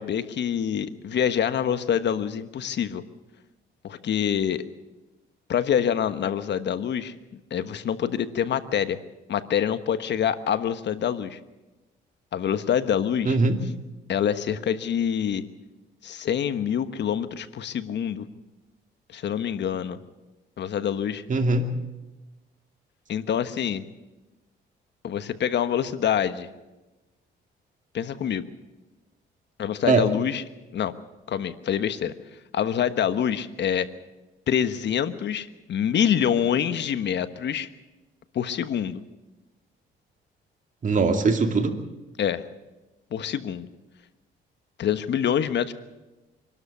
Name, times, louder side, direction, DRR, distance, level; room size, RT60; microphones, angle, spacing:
voice 1, 0.0-3.0 3.8-4.6 5.5-7.1 7.5-9.0 9.3-11.4 12.3-13.4 14.1-15.4 16.0-18.2 19.1-20.0 20.6-21.2 23.1-23.8 25.0-26.5 27.9-28.4 29.6-30.4 30.7-30.9 31.3-32.1 32.5-33.9 34.5-37.7 38.3-39.0 42.2-42.5 43.1-43.7 44.8-45.7, left 9 dB, 60° left, 11 dB, 1.3 m, -26 dB
voice 2, 13.3-13.6 21.3-21.7 29.8-30.1 40.8-41.7, right 3 dB, 40° right, 5 dB, 2.5 m, -21 dB
25.0 x 12.5 x 8.5 m, 1.1 s
cardioid pair, 90°, 20 cm